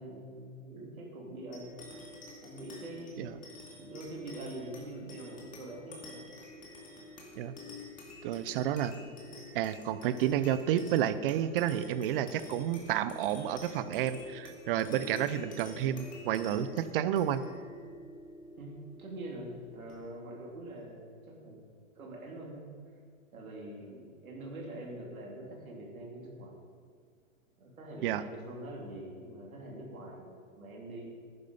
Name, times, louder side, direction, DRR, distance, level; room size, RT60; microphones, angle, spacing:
voice 1, 0.0-1.7 2.4-3.3 3.8-6.3 18.6-21.6 21.9-22.7 23.3-26.6 27.6-31.1, right 1 dB, 90° right, -1 dB, 3.1 m, -44 dB
sound 1, 1.5-20.4, left 2 dB, 20° left, 2.4 m, -48 dB
voice 2, 8.2-9.0 9.5-17.4 28.0-28.2, right 11 dB, 40° right, 14 dB, 0.7 m, -30 dB
11.5 x 9.7 x 5.3 m, 2.1 s
hypercardioid pair, 135°, 41 cm